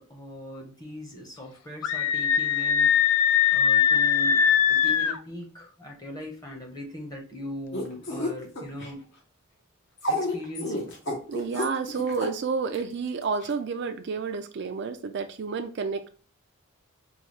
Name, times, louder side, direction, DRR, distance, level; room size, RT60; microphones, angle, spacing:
voice 1, 0.0-3.2 3.5-9.0 10.1-10.9, left 1 dB, 15° left, 1 dB, 0.9 m, -40 dB
Screaming, 1.8-5.2, left 8 dB, 90° left, 0.4 m, -21 dB
sound 1, 7.7-8.9 10.0-12.3 12.7-12.8 13.4-13.5, left 1 dB, 55° left, 1.0 m, -30 dB
voice 2, 11.3-16.1, right 5 dB, 50° right, 7 dB, 0.4 m, -30 dB
5.4 x 2.3 x 3.1 m, 0.40 s
head